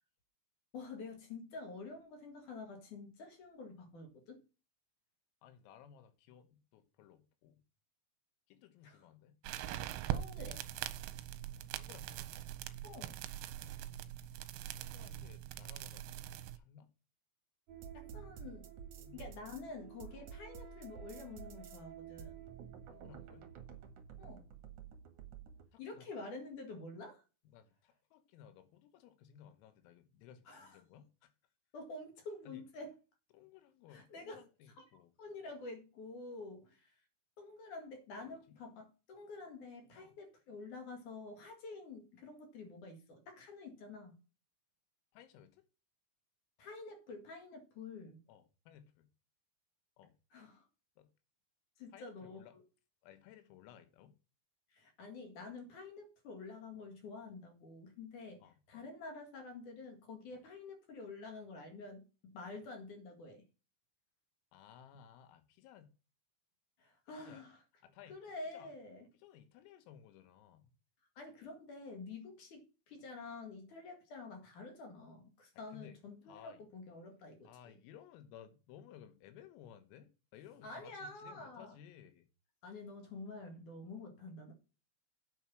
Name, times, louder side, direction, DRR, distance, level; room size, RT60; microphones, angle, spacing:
voice 1, 0.7-4.4 8.8-9.0 10.1-10.6 12.8-13.2 17.9-18.7 19.1-22.4 24.2-24.4 25.8-27.2 30.5-30.8 31.7-32.9 33.9-34.4 34.8-36.9 37.4-44.2 46.6-48.2 50.3-50.7 51.8-52.6 54.7-58.4 58.7-63.4 66.8-67.6 68.1-69.1 71.2-77.8 80.6-81.8 82.6-84.5, left 3 dB, 55° left, 2.5 m, -48 dB
voice 2, 5.4-7.6 8.5-9.4 11.7-12.3 14.7-16.9 19.0-19.4 20.1-20.3 22.9-23.5 25.7-26.1 27.5-31.3 32.5-32.6 33.3-35.1 38.3-38.6 39.9-40.1 45.1-45.7 48.3-49.1 50.0-50.2 51.0-51.1 51.9-52.6 53.0-54.1 58.4-58.9 62.5-62.6 64.5-65.9 67.2-67.5 67.8-68.2 68.5-68.7 69.1-70.7 75.7-76.0 76.3-76.6 77.5-82.3, left 9 dB, 85° left, 3.9 m, -58 dB
sound 1, 9.4-16.6, right 12 dB, 85° right, 3.1 m, -42 dB
sound 2, 17.7-25.7, right 8 dB, 60° right, 2.1 m, -51 dB
8.9 x 6.3 x 6.1 m
omnidirectional pair, 6.0 m